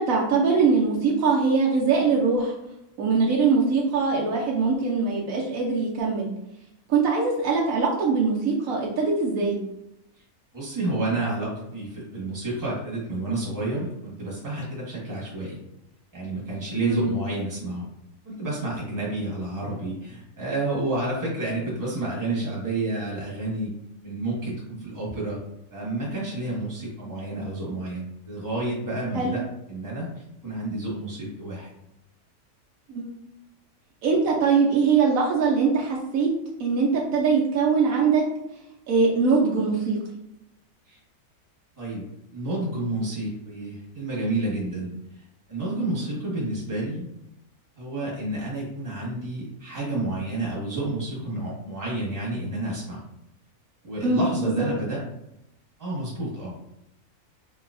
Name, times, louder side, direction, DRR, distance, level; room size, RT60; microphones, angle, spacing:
voice 1, 0.0-2.5 3.0-6.3 6.9-9.6 16.8-17.1 29.1-29.4 32.9-33.2 34.0-36.3 36.6-38.2 38.9-40.0 45.8-46.0 54.0-54.7, right 4 dB, 70° right, -3 dB, 1.0 m, -22 dB
voice 2, 10.5-15.6 16.1-17.9 18.2-23.7 24.0-25.4 25.7-29.4 29.7-30.1 30.4-31.7 40.9-41.0 41.8-42.0 42.3-44.9 45.1-45.2 45.5-47.1 47.8-53.0 53.8-55.0 55.8-56.5, right 2 dB, 15° right, -5 dB, 1.1 m, -30 dB
3.9 x 2.7 x 2.5 m, 0.85 s
omnidirectional pair, 1.6 m